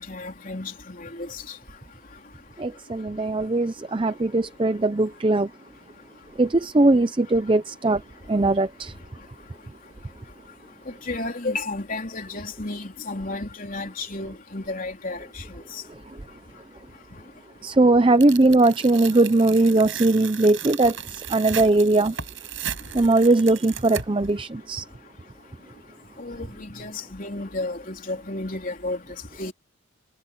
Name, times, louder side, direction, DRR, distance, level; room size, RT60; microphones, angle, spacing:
voice 1, 0.0-1.5 11.1-15.4 15.7-15.8 26.2-29.0 29.4-29.5, left 2 dB, 40° left, 3.8 m, -32 dB
voice 2, 2.6-5.5 6.4-8.0 8.3-8.9 15.9-16.2 17.6-22.2 22.9-24.9, right 2 dB, 25° right, 0.6 m, -20 dB
Tearing, 18.2-24.3, right 9 dB, 70° right, 5.0 m, -36 dB
head